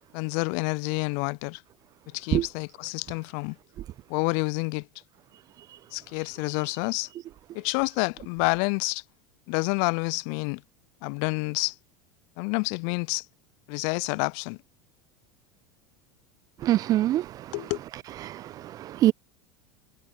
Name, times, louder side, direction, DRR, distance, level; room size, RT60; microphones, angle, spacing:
voice 1, 0.1-1.6 2.1-3.6 4.1-4.9 5.9-7.1 7.5-9.0 9.5-10.6 11.0-11.8 12.4-13.3 13.7-14.6 17.5-17.8, left 40 dB or more, 50° left, 0.5 m, -28 dB
voice 2, 16.6-17.5 18.2-19.1, right 13 dB, 40° right, 1.2 m, -24 dB
figure-of-eight pair, 75°, 10 cm